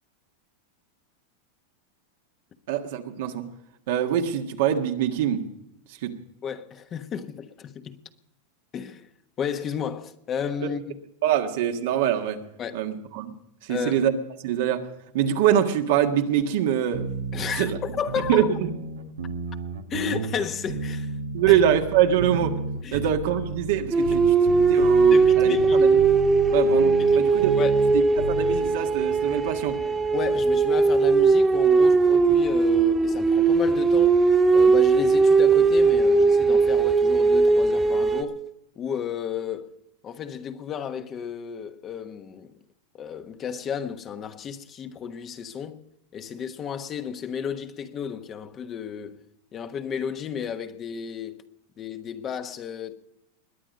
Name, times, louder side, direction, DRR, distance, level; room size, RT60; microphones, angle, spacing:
voice 1, 2.7-3.5 3.9-5.5 6.0-6.2 10.6-10.7 11.2-12.4 12.7-13.3 13.6-14.1 14.4-14.9 15.1-17.1 17.6-17.8 18.3-18.7 21.3-22.6 22.9-26.0 26.5-27.5 27.9-29.8, right 10 dB, 70° right, 1.6 m, -24 dB
voice 2, 6.4-8.0 8.7-9.1 9.4-11.0 12.6-12.9 13.7-14.0 17.3-18.5 19.9-21.1 21.5-21.6 22.8-23.0 25.1-25.9 27.0-27.3 27.6-27.8 30.1-34.2 34.5-38.4 38.8-39.8 40.0-42.5 42.9-45.8 46.1-49.2 49.5-51.4 51.8-52.9, left 7 dB, 35° left, 1.3 m, -33 dB
sound 1, 16.9-28.7, right 4 dB, 90° right, 1.5 m, -33 dB
sound 2, 23.9-38.2, right 4 dB, 20° right, 1.5 m, -19 dB
21.0 x 8.9 x 5.3 m
hypercardioid pair, 110°, 0 cm